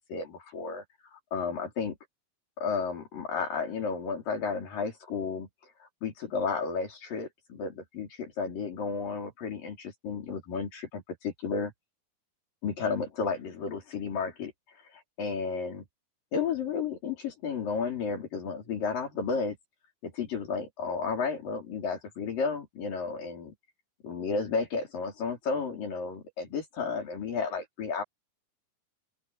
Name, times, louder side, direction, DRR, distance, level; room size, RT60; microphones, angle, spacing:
voice 1, 0.0-2.0 2.6-5.5 6.0-11.7 12.6-14.5 15.2-15.9 16.3-19.6 20.0-23.5 24.0-28.0, left 5 dB, 80° left, 6.5 m, -32 dB
open air
omnidirectional pair, 3.9 m